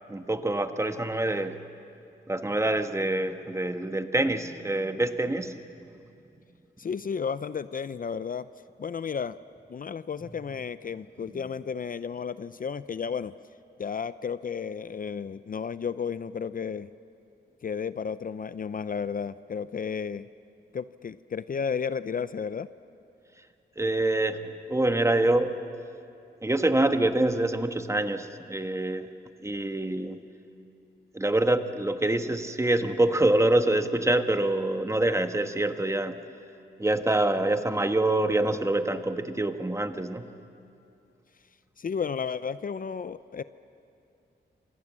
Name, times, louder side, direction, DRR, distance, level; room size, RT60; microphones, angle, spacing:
voice 1, 0.1-1.6 2.3-5.6 11.3-11.4 23.8-25.6 26.4-29.1 29.4-30.2 31.1-36.2 36.8-40.2, right 2 dB, 15° right, 8 dB, 1.3 m, -26 dB
voice 2, 6.8-8.5 8.8-9.4 9.7-13.3 13.8-16.9 17.6-20.3 20.7-22.7 41.8-43.4, left 6 dB, 50° left, 14 dB, 0.5 m, -33 dB
28.0 x 26.0 x 7.5 m, 2.7 s
wide cardioid pair, 105°, 19 cm